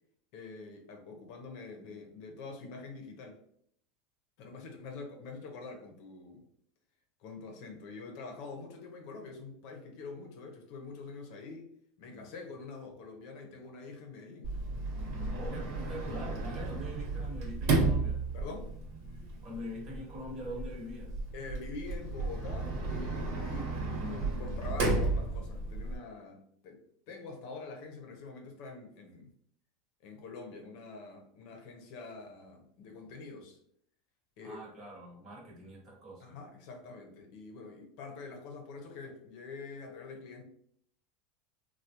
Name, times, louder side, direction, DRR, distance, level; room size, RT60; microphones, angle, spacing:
voice 1, 0.3-3.4 4.4-6.5 7.2-11.7 12.0-14.6 18.3-18.7 21.3-29.3 30.0-33.6 34.4-34.6 36.2-40.4, left 4 dB, 55° left, 3 dB, 0.7 m, -45 dB
Sliding door, 14.4-26.0, right 3 dB, 65° right, 1.1 m, -33 dB
voice 2, 15.3-18.2 19.4-21.1 24.5-24.8 34.4-36.4, equal, 35° right, -1 dB, 1.0 m, -43 dB
3.4 x 2.2 x 2.9 m, 0.68 s
supercardioid pair, 155°, 0 cm